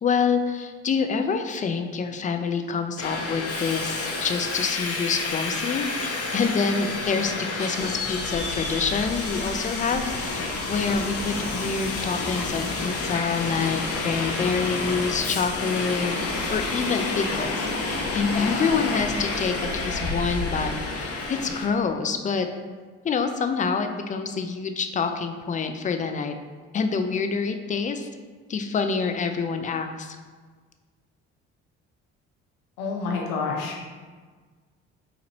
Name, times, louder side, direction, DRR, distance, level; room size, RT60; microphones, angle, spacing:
voice 1, 0.0-16.1 16.5-22.5 23.0-26.3 26.7-28.1 28.5-30.2, left 5 dB, 25° left, 6 dB, 0.3 m, -27 dB
Subway metro underground, 3.0-21.7, left 3 dB, 50° left, 0.7 m, -29 dB
voice 2, 32.8-33.9, left 4 dB, 80° left, 0 dB, 0.7 m, -28 dB
4.1 x 2.5 x 2.9 m, 1.5 s
supercardioid pair, 60°, 31 cm